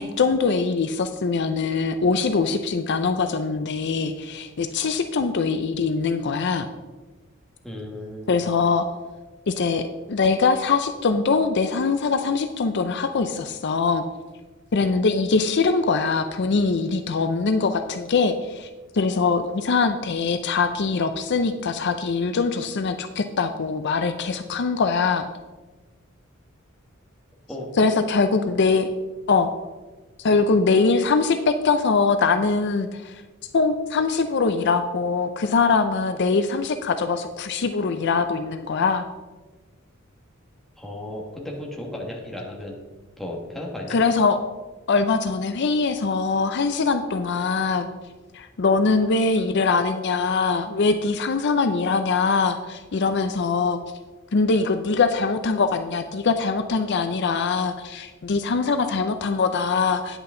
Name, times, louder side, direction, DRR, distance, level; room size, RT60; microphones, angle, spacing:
voice 1, 0.0-6.7 8.3-8.8 9.5-14.0 14.7-18.7 18.9-25.3 27.8-28.9 29.3-29.5 30.2-33.2 33.5-39.1 43.9-44.4 44.9-47.9 48.3-53.8 54.3-60.2, left 4 dB, 55° left, 8 dB, 0.5 m, -22 dB
voice 2, 7.6-8.4 27.5-27.9 40.8-42.8 43.2-44.0, left 1 dB, ahead, -2 dB, 1.7 m, -34 dB
9.9 x 8.1 x 3.8 m, 1.2 s
head